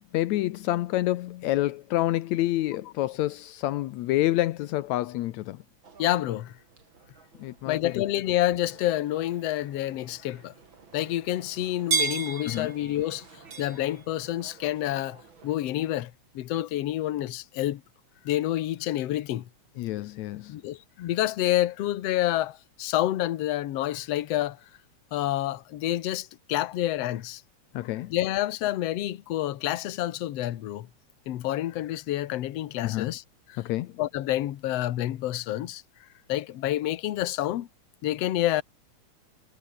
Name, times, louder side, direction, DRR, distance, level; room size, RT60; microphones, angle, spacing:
voice 1, 0.1-5.6 7.4-8.0 12.5-12.7 19.8-20.6 27.7-28.1 32.8-33.1 33.6-34.0, left 16 dB, 80° left, 2.0 m, -28 dB
sound 1, 5.8-15.5, right 5 dB, 40° right, 3.6 m, -37 dB
voice 2, 6.0-6.6 7.7-10.5 10.9-13.3 13.6-17.8 18.2-19.5 20.5-24.6 25.1-27.4 28.1-30.9 31.3-33.2 33.5-33.6 34.0-35.8 36.3-37.7 38.0-38.6, left 14 dB, 65° left, 2.1 m, -28 dB
omnidirectional pair, 3.3 m